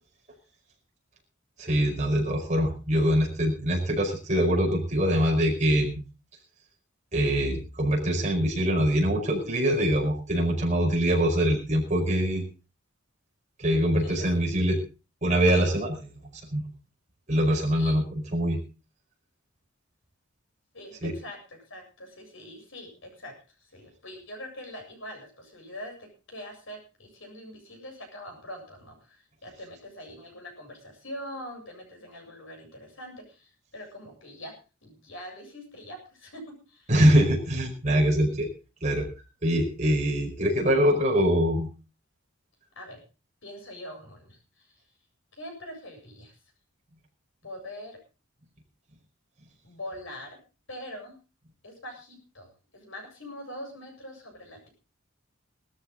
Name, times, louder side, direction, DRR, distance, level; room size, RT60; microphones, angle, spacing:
voice 1, 1.6-5.9 7.1-12.4 13.6-14.8 15.2-16.1 16.5-16.6 17.3-18.6 21.0-21.1 36.9-38.5 38.8-39.1 39.4-41.7, equal, 35° right, 1 dB, 5.1 m, -23 dB
voice 2, 20.7-23.3 23.7-34.5 34.8-36.4 36.7-36.9 42.7-43.0 43.4-44.7 45.3-46.3 47.4-48.0 49.6-50.4 50.7-51.2 51.6-52.5 52.7-54.7, left 1 dB, 65° left, 2 dB, 7.9 m, -43 dB
18.5 x 13.5 x 3.9 m, 0.32 s
head